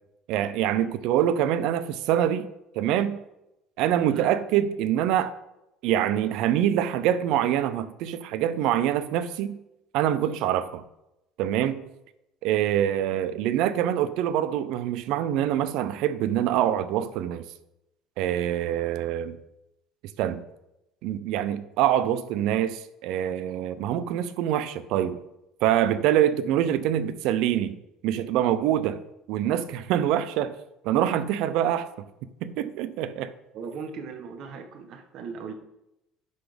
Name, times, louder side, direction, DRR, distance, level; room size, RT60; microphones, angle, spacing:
voice 1, 0.3-2.5 2.8-3.2 3.8-5.3 5.8-9.6 9.9-10.8 11.4-11.8 12.4-17.4 18.2-19.4 20.2-20.4 21.0-25.2 25.6-27.8 28.0-29.0 29.3-30.5 30.8-31.9 32.4-33.3, right 11 dB, 65° right, 0.6 m, -25 dB
voice 2, 33.5-35.5, right 5 dB, 50° right, 1.1 m, -38 dB
10.5 x 4.1 x 5.1 m
cardioid pair, 145°, 0 cm